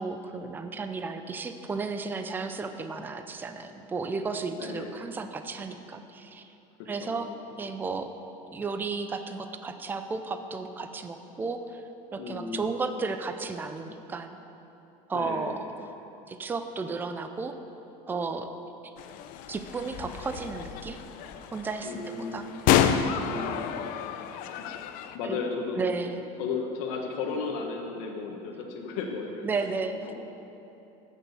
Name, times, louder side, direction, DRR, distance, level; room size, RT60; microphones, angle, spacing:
voice 1, 0.0-6.5 6.9-7.3 7.6-8.1 8.5-11.8 12.1-14.4 15.1-15.7 16.3-17.6 18.1-18.5 19.5-21.0 21.5-22.0 22.3-22.5 22.8-23.1 25.2-25.4 25.8-26.2 29.4-30.0, right 4 dB, 10° right, 7 dB, 0.5 m, -33 dB
voice 2, 4.5-5.0 6.8-7.3 12.2-12.7 15.1-15.6 21.8-22.5 23.2-23.8 24.6-24.7 25.1-26.1 26.4-29.5 30.1-30.2, left 4 dB, 85° left, 1 dB, 1.3 m, -34 dB
sound 1, 19.0-25.2, left 9 dB, 55° left, 0.6 m, -29 dB
14.5 x 6.2 x 6.8 m, 3.0 s
cardioid pair, 160°, 17 cm